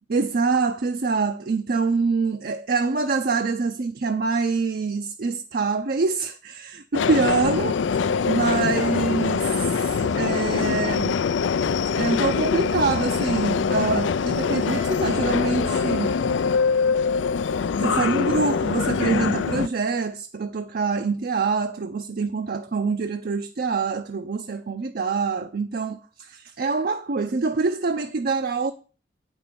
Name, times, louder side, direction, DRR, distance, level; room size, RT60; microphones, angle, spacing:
voice 1, 0.1-11.2 11.9-16.1 17.8-28.7, right 4 dB, 55° right, 0.5 m, -25 dB
Subway metro underground, 6.9-19.7, left 5 dB, 80° left, 0.4 m, -23 dB
Guitar, 14.7-17.5, right 3 dB, 80° right, 2.0 m, -45 dB
9.0 x 5.4 x 6.8 m
head